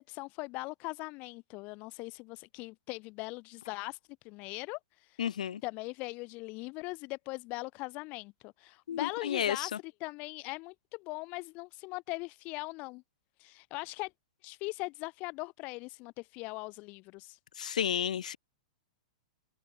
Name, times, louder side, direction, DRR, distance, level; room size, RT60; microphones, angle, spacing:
voice 1, 0.0-4.0 4.2-5.2 5.6-13.0 13.4-14.1 14.4-17.4, left 25 dB, 40° left, 4.9 m, -40 dB
voice 2, 5.2-5.6 8.9-9.7 17.6-18.4, left 9 dB, 90° left, 5.6 m, -32 dB
hypercardioid pair, 145°, 4 cm